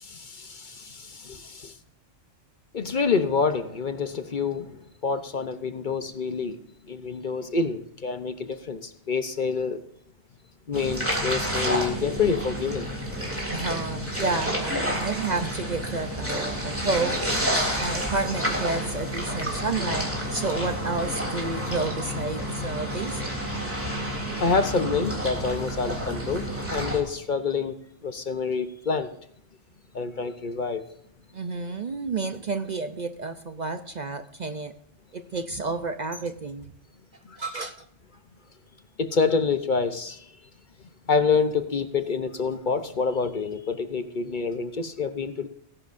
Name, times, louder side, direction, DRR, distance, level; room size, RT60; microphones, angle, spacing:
voice 1, 0.0-1.7 2.7-6.6 6.9-9.8 10.7-12.9 24.4-27.8 28.0-29.1 29.9-30.8 37.3-37.4 39.0-40.2 41.1-45.5, left 5 dB, 45° left, 0.9 m, -27 dB
sound 1, 10.7-27.0, equal, 10° right, 3.3 m, -30 dB
voice 2, 13.5-17.1 17.8-23.4 31.3-34.7 35.1-36.7 37.4-37.9, right 3 dB, 45° right, 0.7 m, -30 dB
19.0 x 11.0 x 2.6 m
omnidirectional pair, 1.2 m